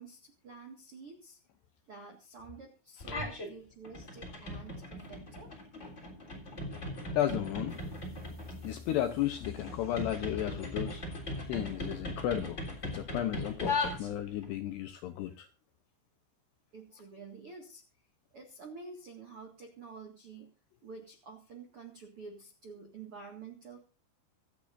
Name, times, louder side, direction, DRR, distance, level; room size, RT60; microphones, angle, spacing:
voice 1, 0.0-1.4 1.9-5.5 16.7-17.8 18.3-20.5 20.8-23.9, right 4 dB, 60° right, 2 dB, 1.4 m, -49 dB
sound 1, 3.0-3.5 3.8-14.5, left 2 dB, 20° left, 2.8 m, -39 dB
voice 2, 7.1-7.8 8.6-11.0 11.5-12.6 12.9-15.5, left 12 dB, 80° left, 8 dB, 2.5 m, -33 dB
sound 2, 7.7-14.8, left 1 dB, ahead, 4.2 m, -51 dB
25.0 x 8.6 x 2.6 m, 0.33 s
omnidirectional pair, 5.8 m